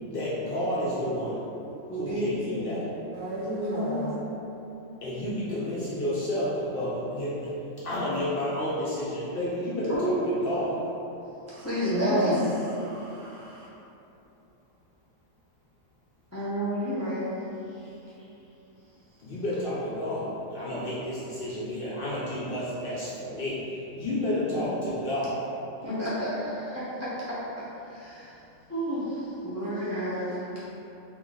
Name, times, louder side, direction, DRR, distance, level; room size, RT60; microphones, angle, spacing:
voice 1, 0.1-1.5 1.9-2.9 5.0-7.5 7.8-10.8 19.2-23.6 23.9-25.4, left 1 dB, 60° left, -8 dB, 0.6 m, -30 dB
voice 2, 1.9-2.8 3.7-4.1 9.9-10.5 11.6-12.4 16.3-17.3 17.7-17.9 25.8-27.4 27.8-28.4 28.7-30.4, equal, 25° left, -11 dB, 0.3 m, -31 dB
voice 3, 3.1-4.2 11.5-13.7, right 1 dB, 65° right, -4 dB, 0.8 m, -30 dB
2.8 x 2.4 x 3.8 m, 2.9 s
omnidirectional pair, 1.4 m